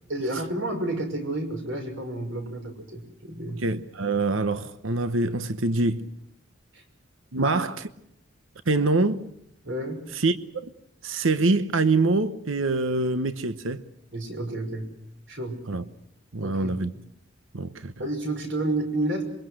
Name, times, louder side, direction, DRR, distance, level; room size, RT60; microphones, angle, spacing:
voice 1, 0.1-3.6 6.7-6.8 7.3-7.6 9.6-10.0 14.1-14.9 15.3-15.6 16.4-16.8 18.0-19.2, right 1 dB, 65° right, 5.8 m, -30 dB
voice 2, 3.6-6.0 7.3-7.7 8.7-9.2 10.1-10.7 11.0-13.8 15.7-15.8 16.3-16.9 17.5-17.9, right 3 dB, 80° right, 1.0 m, -25 dB
27.0 x 23.5 x 6.4 m
head